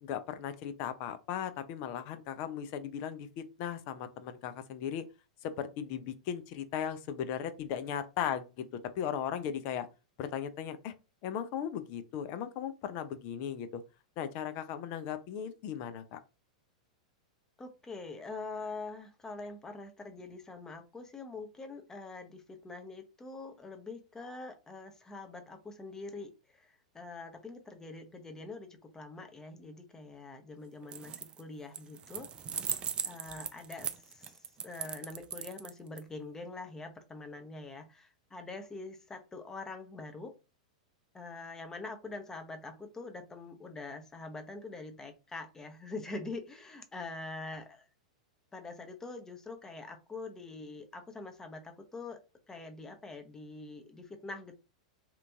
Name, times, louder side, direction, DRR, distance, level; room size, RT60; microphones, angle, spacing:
voice 1, 0.0-5.1 5.4-8.7 9.0-9.9 10.2-10.9 11.2-13.8 14.2-16.2, left 9 dB, 50° left, 0.5 m, -37 dB
voice 2, 17.6-32.3 33.0-40.3 41.1-47.8 48.5-52.2 52.5-54.5, left 3 dB, 15° left, 0.8 m, -44 dB
sound 1, 30.8-31.4 31.7-36.0, right 8 dB, 25° right, 0.4 m, -38 dB
2.9 x 2.5 x 3.5 m
hypercardioid pair, 105°, 4 cm